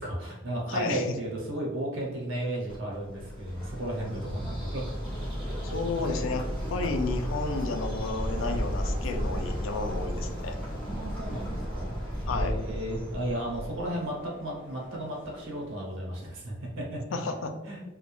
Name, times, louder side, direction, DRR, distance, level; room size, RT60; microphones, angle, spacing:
voice 1, 0.0-4.8 10.8-17.0 17.6-17.9, right 1 dB, 80° right, -2 dB, 0.9 m, -34 dB
voice 2, 0.7-1.1 5.7-10.6 12.3-12.5 17.1-17.5, left 3 dB, 75° left, 6 dB, 0.4 m, -32 dB
Bird, 2.7-14.1, equal, 5° left, 1.1 m, -34 dB
sound 1, 5.1-15.9, equal, 55° left, 0.8 m, -48 dB
2.4 x 2.1 x 3.0 m, 1.1 s
head